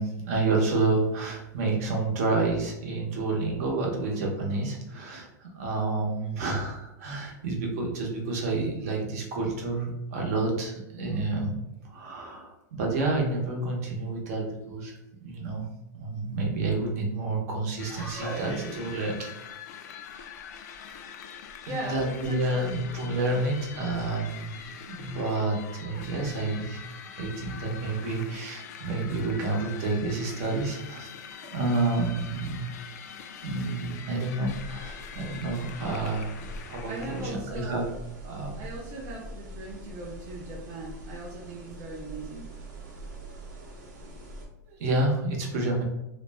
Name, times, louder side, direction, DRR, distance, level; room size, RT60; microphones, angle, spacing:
voice 1, 0.0-11.6 11.9-14.9 15.2-15.7 16.0-19.3 21.7-24.5 24.9-26.9 27.2-31.1 31.4-32.7 33.4-37.9 38.2-38.6 44.7-45.8, right 2 dB, 55° right, 0 dB, 0.8 m, -29 dB
sound 1, 17.8-37.3, left 7 dB, 65° left, 0.4 m, -44 dB
voice 2, 21.7-22.8 36.9-37.8 38.6-42.5, right 2 dB, 25° right, -2 dB, 0.4 m, -39 dB
sound 2, 34.5-44.5, equal, 85° right, 0.8 m, -43 dB
2.4 x 2.1 x 3.3 m, 0.91 s
supercardioid pair, 155°, 10 cm